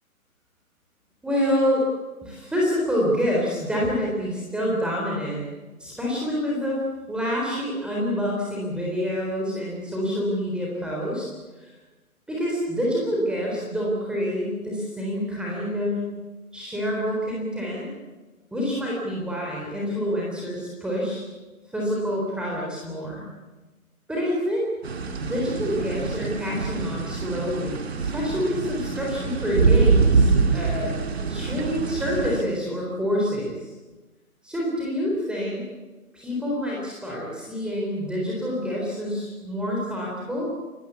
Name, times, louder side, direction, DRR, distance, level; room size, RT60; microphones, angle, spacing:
voice 1, 1.2-1.9 2.2-5.4 5.8-6.8 7.1-11.3 12.3-16.1 16.5-17.9 18.5-21.2 21.7-23.3 24.1-24.6 25.2-31.0 31.3-33.6 34.4-35.6 36.1-40.5, equal, ahead, -4 dB, 3.8 m, -27 dB
sound 1, 24.8-32.4, right 4 dB, 45° right, 2.5 m, -24 dB
29.5 x 18.5 x 8.4 m, 1.2 s
figure-of-eight pair, 145°, 44 cm